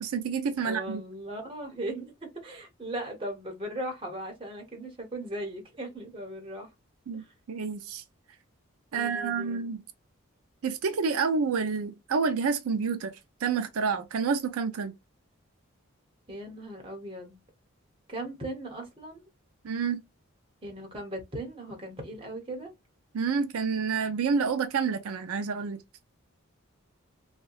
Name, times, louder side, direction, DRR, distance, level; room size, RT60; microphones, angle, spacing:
voice 1, 0.0-1.0 7.1-8.0 8.9-9.8 10.6-13.1 13.4-14.9 19.6-20.0 23.1-25.8, right 5 dB, 90° right, 0.4 m, -28 dB
voice 2, 0.6-6.7 7.1-7.3 8.9-9.6 16.3-17.4 18.1-19.3 20.6-22.7, right 1 dB, 25° right, 0.9 m, -38 dB
2.7 x 2.2 x 2.3 m
head